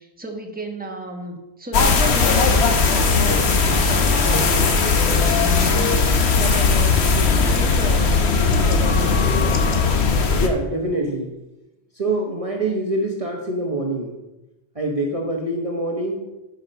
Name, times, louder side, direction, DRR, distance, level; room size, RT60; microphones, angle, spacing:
voice 1, 0.0-9.3, right 2 dB, 10° right, 2 dB, 1.3 m, -32 dB
sound 1, 1.7-10.5, left 4 dB, 85° left, 1.3 m, -18 dB
voice 2, 10.3-11.4 11.9-14.2 14.7-16.2, right 1 dB, 35° right, 0 dB, 1.2 m, -25 dB
11.5 x 5.2 x 5.5 m, 0.98 s
omnidirectional pair, 1.1 m